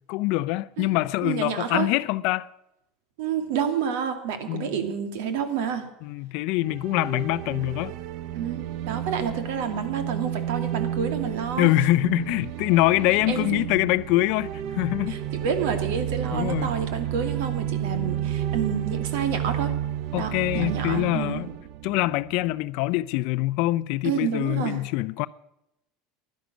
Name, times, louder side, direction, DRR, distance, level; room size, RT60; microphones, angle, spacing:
voice 1, 0.1-2.5 4.5-4.8 6.0-7.9 11.6-15.2 16.3-16.7 20.1-21.5 21.8-25.3, left 18 dB, 55° left, 0.5 m, -24 dB
voice 2, 1.2-1.9 3.2-5.9 8.3-11.7 13.3-13.6 15.1-19.7 20.2-21.4 24.0-24.8, right 7 dB, 70° right, 2.3 m, -29 dB
sound 1, 6.6-22.7, right 11 dB, 45° right, 0.7 m, -31 dB
16.0 x 11.5 x 6.2 m
supercardioid pair, 160°, 0 cm